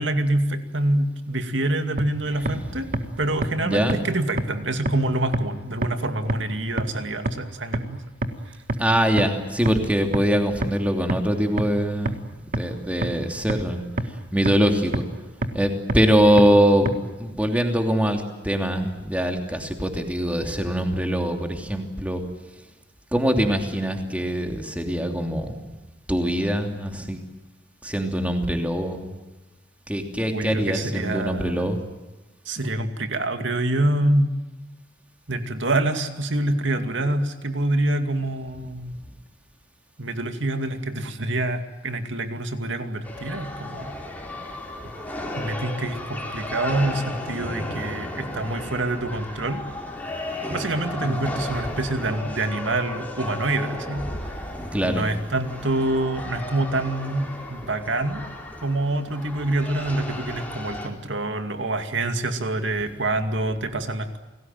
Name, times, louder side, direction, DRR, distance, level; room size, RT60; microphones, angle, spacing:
voice 1, 0.0-2.9 3.2-8.0 30.3-31.6 32.5-34.3 35.3-39.0 40.0-44.0 45.4-49.6 50.5-54.1 54.8-58.2 58.6-64.2, right 2 dB, 70° right, 7 dB, 2.4 m, -26 dB
sound 1, 2.0-2.1 2.5-2.6 2.9-3.0 3.4-3.5 3.9-4.0 4.4-4.5 4.9-5.0 5.3-5.4 5.8-5.9 6.3-6.4 6.8-6.9 7.3-7.4 7.7-7.8 8.2-8.3 8.7-8.8 9.2-9.3 9.7-9.8 10.1-10.2 10.6-10.7 11.1-11.2 11.6-11.7 12.1-12.2 12.5-12.6 13.0-13.1 13.5-13.6 14.0-14.1 14.5-14.6 14.9-15.0 15.4-15.5 15.9-16.0 16.4-16.5 16.9-17.0, right 1 dB, 45° right, 1.8 m, -23 dB
voice 2, 2.6-3.0 3.6-4.0 8.8-12.2 12.5-15.0 15.5-16.9 17.2-22.2 23.1-25.6 26.1-27.2 27.8-29.1 29.9-31.8 51.0-51.2 54.7-55.1, equal, 5° right, 4 dB, 3.0 m, -23 dB
sound 2, 43.0-60.9, left 1 dB, 10° left, 3.9 m, -34 dB
28.5 x 19.5 x 9.2 m, 1.1 s
head